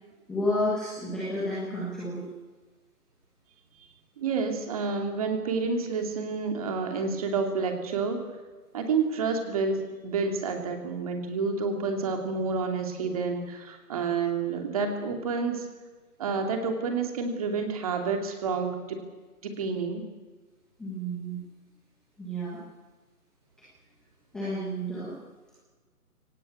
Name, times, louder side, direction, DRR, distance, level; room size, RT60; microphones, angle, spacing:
voice 1, 0.3-2.2 20.8-21.4 22.2-22.6 24.3-25.1, equal, ahead, -9 dB, 1.3 m, -31 dB
voice 2, 4.2-8.2 8.7-15.7 16.2-19.0 19.4-20.0, right 4 dB, 25° right, 4 dB, 2.7 m, -29 dB
23.5 x 18.0 x 8.5 m, 1.3 s
hypercardioid pair, 170°, 46 cm